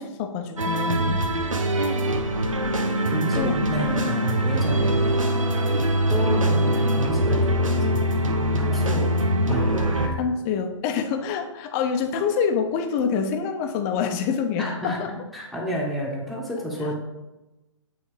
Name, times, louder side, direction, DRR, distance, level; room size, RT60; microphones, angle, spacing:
voice 1, 0.0-1.3 3.4-3.6 10.2-15.1, left 6 dB, 30° left, 6 dB, 0.9 m, -26 dB
sound 1, 0.6-10.1, right 1 dB, 90° right, 1.1 m, -23 dB
voice 2, 3.1-5.1 6.1-8.2 8.6-9.0 9.5-10.1 14.6-15.0 15.3-17.0, equal, ahead, -4 dB, 1.5 m, -30 dB
8.3 x 4.1 x 5.0 m, 1.0 s
hypercardioid pair, 135°, 17 cm